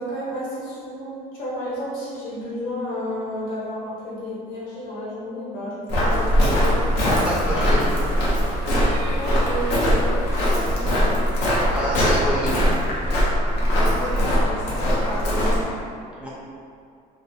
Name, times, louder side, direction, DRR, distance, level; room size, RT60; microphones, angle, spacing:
voice 1, 0.0-6.8 9.1-10.9 13.9-15.8, equal, 60° left, -8 dB, 1.1 m, -32 dB
Walk footsteps, 5.9-15.6, equal, 85° left, 0.7 m, -21 dB
sound 1, 6.1-11.3, right 2 dB, 70° right, 0.4 m, -39 dB
voice 2, 7.2-7.9 11.7-12.7 16.2-16.3, equal, 5° right, -8 dB, 0.5 m, -27 dB
2.4 x 2.1 x 2.7 m, 2.3 s
cardioid pair, 110°, 17 cm